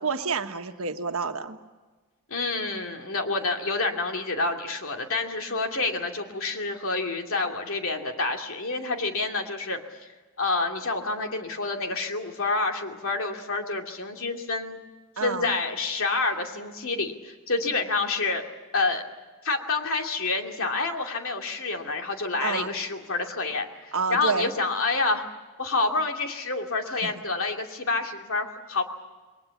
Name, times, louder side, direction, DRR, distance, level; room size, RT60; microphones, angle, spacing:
voice 1, 0.0-1.6 15.2-15.5 22.4-22.7 23.9-24.5 27.0-27.1, right 5 dB, 65° right, 6 dB, 1.4 m, -29 dB
voice 2, 2.3-10.1 10.4-14.8 15.2-18.4 18.7-19.0 19.4-25.3 25.6-28.8, left 3 dB, 65° left, 3 dB, 2.6 m, -28 dB
28.0 x 22.0 x 7.2 m, 1.3 s
head